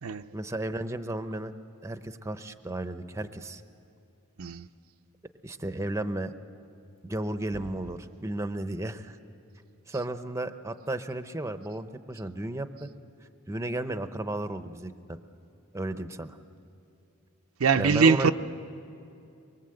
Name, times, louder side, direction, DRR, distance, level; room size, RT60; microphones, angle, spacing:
voice 1, 0.3-1.5 1.8-3.6 5.4-6.3 7.0-9.2 9.9-12.9 13.5-15.2 15.7-16.4 17.8-18.3, right 1 dB, 15° right, 0.7 m, -34 dB
voice 2, 17.6-18.3, right 5 dB, 70° right, 0.6 m, -22 dB
24.0 x 23.5 x 7.8 m
head